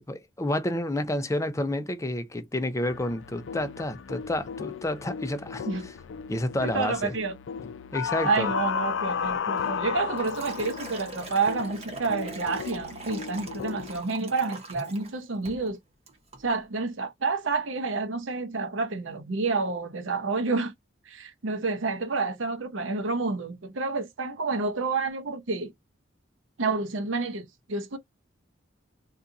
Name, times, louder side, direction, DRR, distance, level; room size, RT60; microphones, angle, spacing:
voice 1, 0.0-5.7 6.3-7.1 7.9-8.5, left 1 dB, 15° left, 0.5 m, -29 dB
sound 1, 2.9-14.0, left 7 dB, 75° left, 0.4 m, -34 dB
voice 2, 6.6-7.3 8.2-15.8 16.4-20.7 21.1-25.7 26.6-28.0, right 4 dB, 85° right, 0.7 m, -29 dB
Liquid, 9.6-15.1 15.5-15.7 16.1-16.4, right 3 dB, 35° right, 1.0 m, -42 dB
2.7 x 2.3 x 3.7 m
head